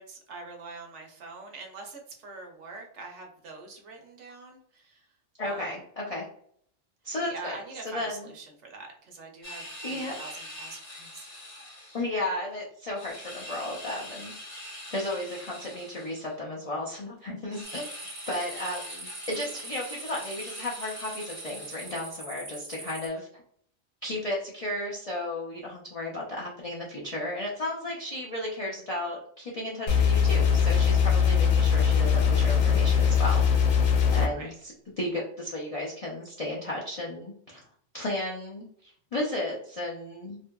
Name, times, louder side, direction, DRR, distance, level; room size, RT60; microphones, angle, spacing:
voice 1, 0.0-5.0 5.4-5.7 7.2-11.3 34.4-34.5, right 3 dB, 70° right, 2 dB, 0.9 m, -44 dB
voice 2, 5.4-6.3 7.0-7.6 7.8-8.3 9.8-10.1 11.9-14.3 14.9-17.9 18.3-23.3 24.0-33.4 34.1-34.5 35.0-37.6 37.9-40.4, left 1 dB, 60° left, -4 dB, 0.3 m, -34 dB
sound 1, 9.4-12.1 13.0-16.4 17.5-22.2, left 1 dB, 30° left, 0.7 m, -44 dB
sound 2, 17.6-23.1, right 2 dB, 50° right, 0.5 m, -42 dB
sound 3, 29.9-34.3, left 7 dB, 85° left, 1.0 m, -21 dB
2.7 x 2.6 x 2.2 m, 0.64 s
omnidirectional pair, 1.4 m